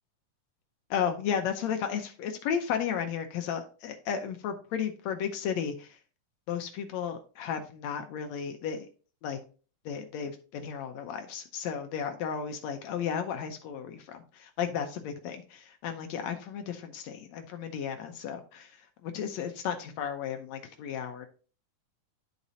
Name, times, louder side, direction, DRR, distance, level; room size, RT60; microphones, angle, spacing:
voice 1, 0.9-6.0 6.5-8.9 9.2-9.4 9.8-21.3, left 7 dB, 75° left, 1.6 m, -34 dB
11.5 x 4.1 x 2.7 m
omnidirectional pair, 3.9 m